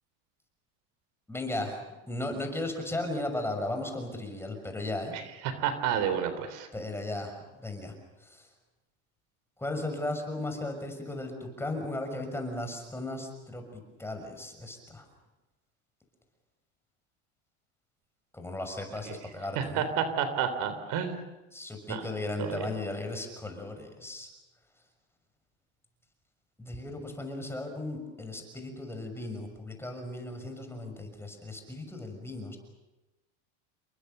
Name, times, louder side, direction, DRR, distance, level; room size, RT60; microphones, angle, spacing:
voice 1, 1.3-5.2 6.7-7.9 8.2-8.5 9.6-15.0 18.3-19.9 21.5-24.3 26.6-32.6, left 2 dB, 5° left, 5 dB, 6.4 m, -36 dB
voice 2, 5.1-6.7 19.1-19.2 19.6-21.2 21.9-22.0 22.4-22.7, right 8 dB, 55° right, 10 dB, 3.7 m, -30 dB
29.0 x 23.0 x 6.8 m, 1.0 s
supercardioid pair, 120°, 36 cm